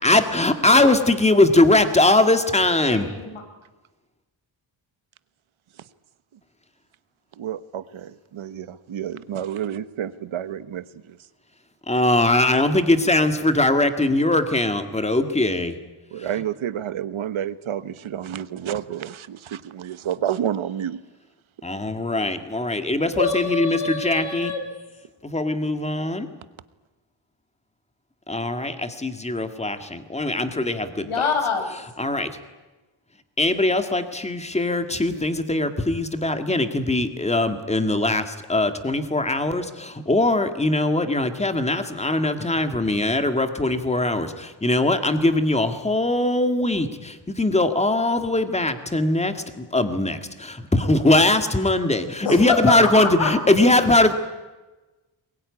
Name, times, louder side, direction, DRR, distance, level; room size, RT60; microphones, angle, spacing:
voice 1, 0.0-3.1 11.9-15.8 21.6-24.5 25.2-26.3 28.3-31.2 32.0-32.3 33.4-54.1, left 2 dB, 15° left, 8 dB, 1.9 m, -21 dB
voice 2, 2.8-3.4 23.1-24.6 31.0-31.7 52.2-52.6 53.0-53.3, left 5 dB, 90° left, 5 dB, 5.2 m, -25 dB
voice 3, 7.4-11.2 16.1-21.0, right 10 dB, 80° right, 15 dB, 1.2 m, -30 dB
22.5 x 21.5 x 9.8 m, 1.1 s
wide cardioid pair, 165°, 48 cm